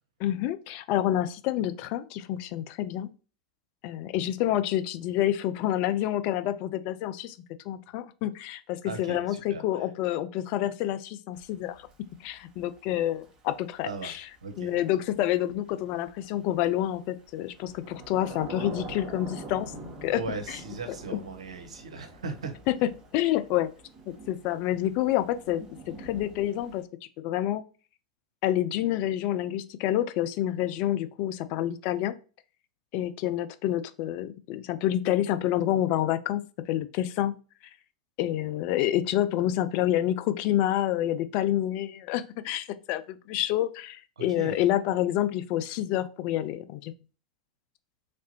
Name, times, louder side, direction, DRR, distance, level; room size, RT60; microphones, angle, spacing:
voice 1, 0.2-3.1 3.8-7.4 7.7-11.8 12.2-14.2 14.6-19.7 20.0-20.2 20.5-20.6 22.7-22.8 23.1-23.7 24.1-26.8 27.2-27.6 28.4-32.1 32.9-37.3 38.2-46.9, left 13 dB, 50° left, 12 dB, 0.3 m, -28 dB
voice 2, 8.8-9.9 13.8-14.1 14.4-14.7 20.1-22.5 44.2-44.6, right 4 dB, 80° right, 6 dB, 0.6 m, -38 dB
Thunder / Rain, 11.3-26.8, right 2 dB, 25° right, 0.9 m, -46 dB
3.2 x 2.5 x 2.7 m, 0.35 s
hypercardioid pair, 90°, 3 cm